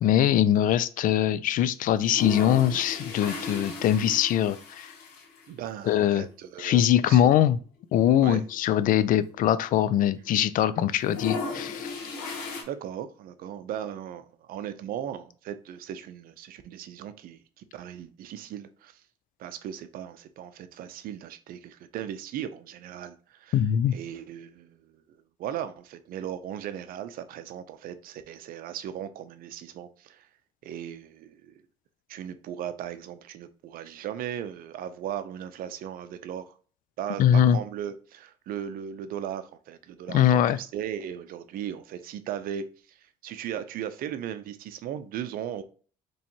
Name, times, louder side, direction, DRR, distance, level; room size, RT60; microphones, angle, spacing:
voice 1, 0.0-4.9 5.8-6.3 6.6-7.6 7.9-11.9 23.5-24.0 37.2-37.6 40.1-40.6, left 10 dB, 60° left, 0.4 m, -22 dB
sound 1, 1.9-5.5 5.8-5.9 6.1-6.2 7.2-7.4 7.8-7.9 8.1-10.0 10.2-10.6 10.9-12.6, left 4 dB, 85° left, 1.1 m, -36 dB
voice 2, 5.5-7.3 8.2-8.4 12.7-19.0 19.4-23.6 23.9-24.9 25.4-30.3 30.6-31.5 32.1-36.5 37.0-45.6, right 10 dB, 65° right, 0.5 m, -37 dB
4.3 x 3.1 x 2.9 m
supercardioid pair, 75°, 16 cm